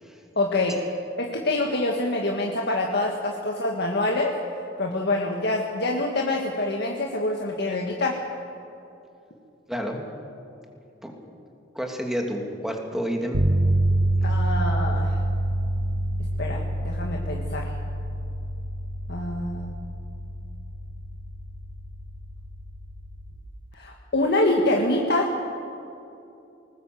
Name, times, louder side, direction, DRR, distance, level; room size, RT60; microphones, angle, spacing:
voice 1, 0.4-0.8 1.2-4.3 4.8-8.2 14.2-15.2 16.4-17.7 19.1-19.7 23.7-25.3, left 2 dB, 60° left, 0 dB, 1.7 m, -25 dB
voice 2, 9.7-10.0 11.0-11.1 11.7-13.4, equal, ahead, 2 dB, 2.6 m, -29 dB
sound 1, 13.3-23.5, right 1 dB, 75° right, 1.3 m, -27 dB
20.5 x 19.5 x 7.8 m, 2.7 s
head